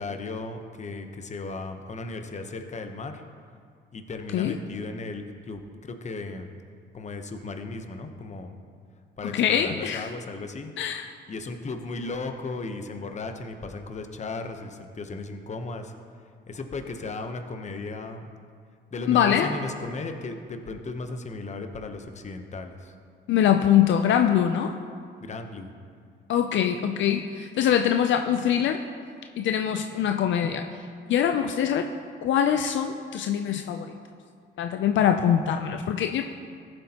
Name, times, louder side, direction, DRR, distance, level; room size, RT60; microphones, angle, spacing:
voice 1, 0.0-3.2 3.9-6.5 6.9-8.6 9.2-10.7 11.3-15.9 16.5-18.3 18.9-22.9 25.2-25.7, left 3 dB, 35° left, 6 dB, 0.9 m, -36 dB
voice 2, 9.2-10.1 10.8-11.1 19.1-19.5 23.3-24.7 26.3-28.8 29.4-30.6 31.1-31.9 32.2-33.9 34.6-36.2, left 9 dB, 70° left, 6 dB, 0.5 m, -23 dB
14.5 x 7.8 x 2.9 m, 2.1 s
cardioid pair, 90°, 20 cm